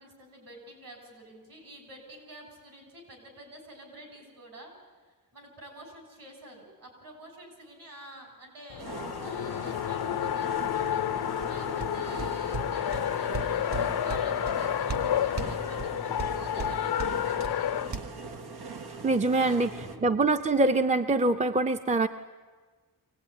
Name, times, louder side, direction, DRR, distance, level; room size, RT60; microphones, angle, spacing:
voice 1, 0.0-8.9 9.2-11.1 11.4-18.1 19.4-20.2, right 1 dB, 60° right, 3 dB, 7.3 m, -49 dB
Race car auto racing, 8.7-17.9, left 10 dB, 80° left, 0.7 m, -30 dB
sound 1, 8.8-20.0, right 4 dB, 90° right, 1.9 m, -42 dB
sound 2, 11.4-18.0, right 4 dB, 45° right, 2.1 m, -39 dB
voice 2, 19.0-19.7 20.0-22.1, right 2 dB, 20° right, 8 dB, 0.6 m, -24 dB
23.5 x 18.0 x 9.8 m, 1.4 s
wide cardioid pair, 145°, 37 cm